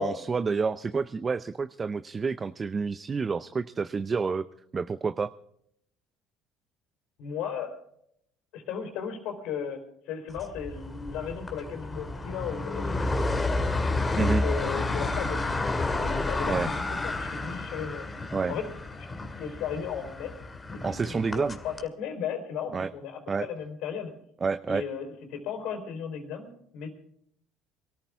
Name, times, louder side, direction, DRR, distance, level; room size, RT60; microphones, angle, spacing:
voice 1, 0.0-4.4 4.7-5.3 14.2-14.5 16.5-16.7 18.3-18.5 20.8-21.6 22.7-22.9 23.3-23.5 24.4-24.8, right 5 dB, 30° right, 13 dB, 0.6 m, -29 dB
voice 2, 7.2-7.8 8.5-9.8 10.1-13.1 14.2-15.6 15.9-18.1 18.5-18.7 19.4-20.3 20.7-24.1 24.7-26.9, left 7 dB, 70° left, 4 dB, 3.9 m, -35 dB
sound 1, 10.4-21.8, left 2 dB, 20° left, 2.2 m, -31 dB
23.5 x 13.5 x 3.5 m, 0.71 s
supercardioid pair, 75°, 0 cm